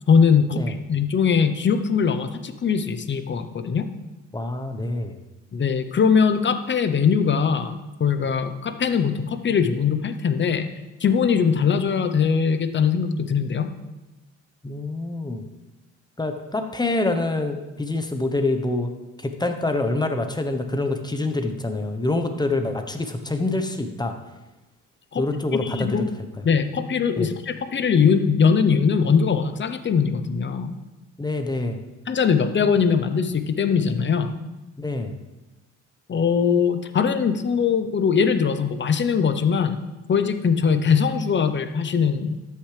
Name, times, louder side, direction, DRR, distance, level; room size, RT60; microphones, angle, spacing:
voice 1, 0.1-3.9 5.5-10.7 11.0-13.7 25.1-25.2 25.6-26.1 26.4-30.7 32.1-34.4 36.1-39.8 40.1-42.4, left 6 dB, 40° left, 9 dB, 0.8 m, -21 dB
voice 2, 4.3-5.2 14.6-15.4 16.2-18.9 19.2-24.1 25.2-26.1 27.2-27.3 31.2-31.8 34.8-35.1, left 2 dB, 15° left, 6 dB, 1.0 m, -26 dB
13.0 x 6.7 x 3.4 m, 1.0 s
cardioid pair, 90°, 30 cm